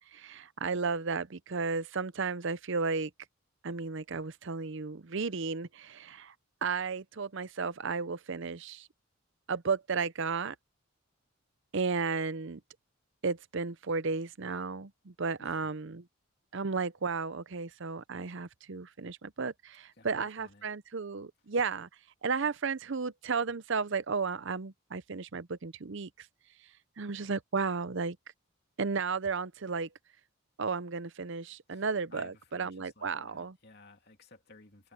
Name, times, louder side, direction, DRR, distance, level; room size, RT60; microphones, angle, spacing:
voice 1, 0.1-3.1 3.6-6.3 6.6-8.9 9.5-10.6 11.7-12.6 13.2-16.0 16.5-21.9 22.2-26.3 27.0-28.2 28.8-29.9 30.6-33.6, right 4 dB, 55° right, 0.6 m, -33 dB
voice 2, 15.4-15.7 20.0-20.7 31.7-34.9, left 3 dB, 45° left, 2.8 m, -56 dB
head